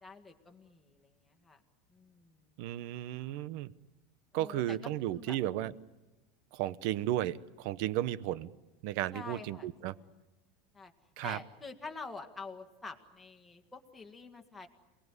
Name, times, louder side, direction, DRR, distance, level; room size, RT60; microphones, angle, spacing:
voice 1, 0.0-1.6 1.9-2.4 4.3-5.4 9.1-10.1 10.7-10.9 11.2-14.7, left 4 dB, 5° left, 2 dB, 1.7 m, -47 dB
voice 2, 2.6-3.7 4.3-5.7 6.5-8.5 8.8-9.9 11.2-11.4, right 13 dB, 55° right, 17 dB, 0.8 m, -34 dB
28.5 x 19.0 x 9.8 m, 1.1 s
supercardioid pair, 165°, 0 cm